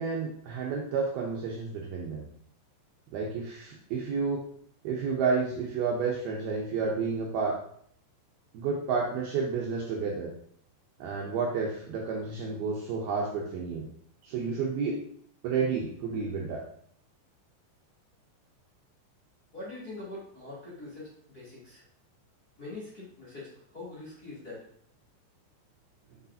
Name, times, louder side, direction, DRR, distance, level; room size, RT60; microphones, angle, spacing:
voice 1, 0.0-2.3 3.1-4.5 4.8-7.6 8.5-10.3 11.0-13.9 14.2-15.0 15.4-16.6, right 5 dB, 75° right, -2 dB, 2.4 m, -30 dB
voice 2, 19.5-21.8 22.6-24.6, left 2 dB, 25° left, -8 dB, 2.4 m, -43 dB
7.2 x 6.6 x 2.7 m, 0.63 s
omnidirectional pair, 5.2 m